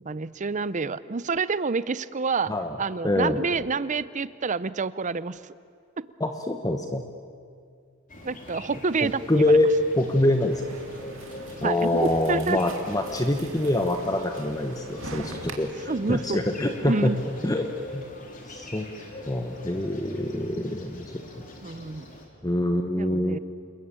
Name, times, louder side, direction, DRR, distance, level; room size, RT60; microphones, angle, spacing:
voice 1, 0.0-2.5 2.8-5.4 8.2-9.6 11.6-12.6 15.9-16.4 16.8-17.2 21.6-22.1 23.0-23.4, right 4 dB, 35° right, 17 dB, 0.6 m, -28 dB
voice 2, 3.0-3.4 6.2-7.0 9.0-9.7 10.0-10.8 11.6-17.1 17.4-18.0 18.5-18.9 19.3-21.2 22.4-23.4, left 1 dB, 15° left, 5 dB, 1.1 m, -25 dB
sound 1, 8.1-22.3, left 2 dB, 40° left, 3.7 m, -43 dB
sound 2, 10.5-15.5, right 3 dB, 70° right, 2.5 m, -42 dB
29.0 x 20.5 x 9.0 m, 2.3 s
head